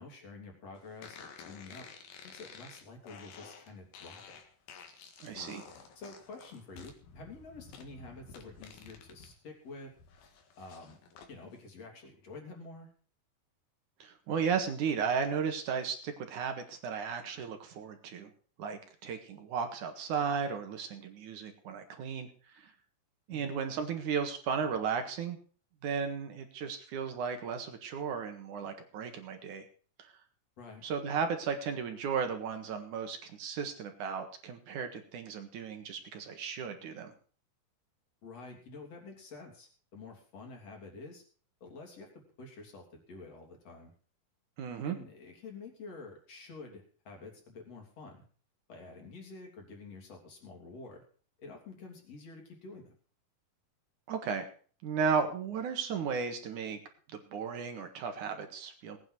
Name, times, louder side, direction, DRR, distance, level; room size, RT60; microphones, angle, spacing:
voice 1, 0.0-1.9 2.2-4.4 6.0-9.9 10.6-11.0 11.3-12.9 23.3-23.6 30.6-30.8 38.2-41.2 41.6-43.9 44.8-48.2 48.7-51.0 51.4-53.0, left 3 dB, 45° left, 1 dB, 4.3 m, -49 dB
sound 1, 1.0-9.3 9.7-11.3, left 5 dB, 85° left, 3.6 m, -51 dB
voice 2, 5.2-5.6 14.0-18.3 18.6-22.3 22.6-22.7 23.3-25.4 25.8-29.7 30.0-30.1 30.8-37.1 44.6-45.0 54.1-54.5 54.8-56.8 57.1-59.0, right 6 dB, 60° right, 6 dB, 2.9 m, -35 dB
18.5 x 9.4 x 4.8 m, 0.42 s
omnidirectional pair, 4.1 m